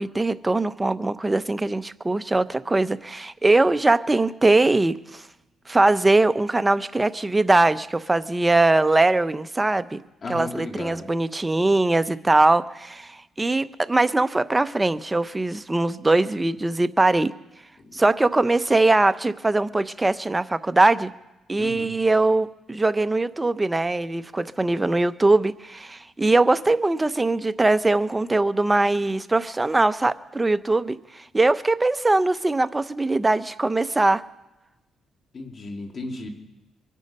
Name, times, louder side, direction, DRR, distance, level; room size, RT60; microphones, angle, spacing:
voice 1, 0.0-5.2 5.7-10.0 10.3-17.3 17.9-21.1 21.5-34.2, right 2 dB, 15° right, 13 dB, 0.7 m, -21 dB
voice 2, 10.2-11.1 17.8-18.0 21.6-21.9 35.3-36.3, left 3 dB, 40° left, 3 dB, 2.6 m, -35 dB
24.0 x 9.2 x 5.5 m, 0.99 s
cardioid pair, 90°, 0 cm